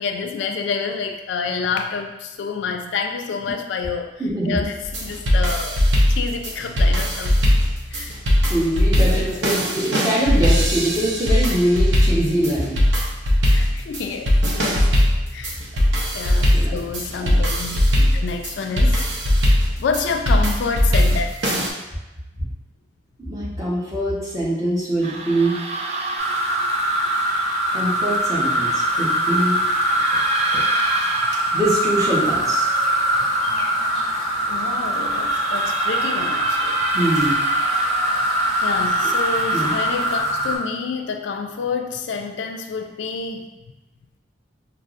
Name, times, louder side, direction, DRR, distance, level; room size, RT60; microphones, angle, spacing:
voice 1, 0.0-4.1 4.5-5.8 6.1-7.6 7.9-8.2 9.0-9.4 13.5-14.8 15.3-15.6 16.1-19.0 19.5-21.7 33.5-33.6 34.5-36.8 38.6-43.5, left 5 dB, 80° left, 5 dB, 0.3 m, -28 dB
voice 2, 4.2-4.6 8.5-12.8 16.5-16.8 17.2-17.4 20.3-20.5 23.3-25.6 27.7-29.6 31.5-32.7 36.9-37.4 39.5-39.7, right 1 dB, 20° right, -7 dB, 0.9 m, -23 dB
sound 1, 4.8-21.7, equal, 80° right, 0.7 m, -19 dB
sound 2, 25.0-40.2, right 2 dB, 35° right, 0.3 m, -31 dB
sound 3, 26.2-40.6, right 1 dB, ahead, 1.0 m, -22 dB
5.3 x 2.0 x 2.4 m, 1.0 s
head